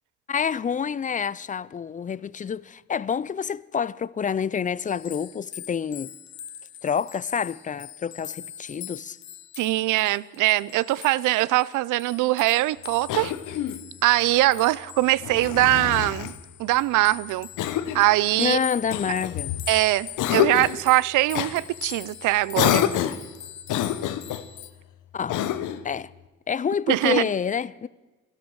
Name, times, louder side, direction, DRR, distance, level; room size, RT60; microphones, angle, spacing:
voice 1, 0.3-6.1 6.8-9.2 18.4-19.5 25.1-25.4 25.8-26.1 26.5-27.9, left 7 dB, 25° left, 0.4 m, -28 dB
sound 1, 4.9-24.7, left 11 dB, 65° left, 1.1 m, -42 dB
voice 2, 9.6-13.3 14.0-16.3 16.6-17.5 17.9-18.6 19.7-22.8 26.9-27.3, right 17 dB, 85° right, 0.5 m, -22 dB
Cough, 13.1-13.8 15.2-16.4 17.6-18.1 18.9-19.7 20.2-20.8 21.3-21.5 22.5-23.3 23.7-24.5 25.3-25.9, left 11 dB, 85° left, 0.9 m, -26 dB
12.5 x 12.5 x 6.3 m
cardioid pair, 90°, 30 cm